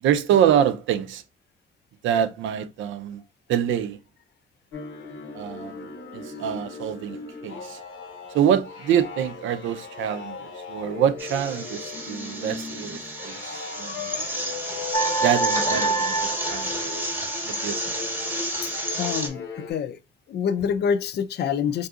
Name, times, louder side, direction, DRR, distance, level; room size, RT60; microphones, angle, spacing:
voice 1, 0.0-1.2 2.0-3.2 3.5-4.0 5.3-7.2 7.4-7.8 8.3-13.0 13.2-14.2 15.2-16.7 17.5-17.9, right 9 dB, 75° right, 0.5 m, -25 dB
sound 1, 4.7-19.7, left 5 dB, 85° left, 0.9 m, -38 dB
sound 2, 11.2-19.3, right 1 dB, 10° right, 0.9 m, -31 dB
sound 3, 14.9-17.6, right 3 dB, 20° left, 0.7 m, -27 dB
voice 2, 19.0-20.0 20.3-21.9, left 7 dB, 55° left, 0.4 m, -26 dB
3.7 x 2.7 x 2.4 m
cardioid pair, 90°, 20 cm